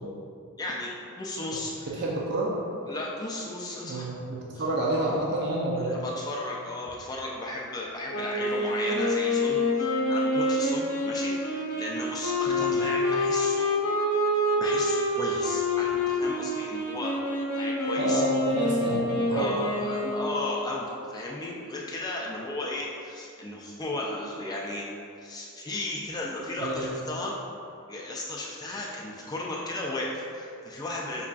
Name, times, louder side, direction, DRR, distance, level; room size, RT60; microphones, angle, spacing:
voice 1, 0.6-2.0 2.9-4.1 5.9-13.8 14.6-18.2 19.3-24.9 25.2-27.3 27.9-31.3, left 2 dB, 15° left, -3 dB, 0.3 m, -35 dB
voice 2, 1.9-2.6 3.8-6.0 12.5-12.8 17.9-19.5 26.6-26.9, right 2 dB, 50° right, -4 dB, 0.5 m, -29 dB
Wind instrument woodwind instrument, 8.1-20.6, left 1 dB, 80° left, 0.6 m, -27 dB
5.4 x 2.4 x 2.3 m, 2.4 s
head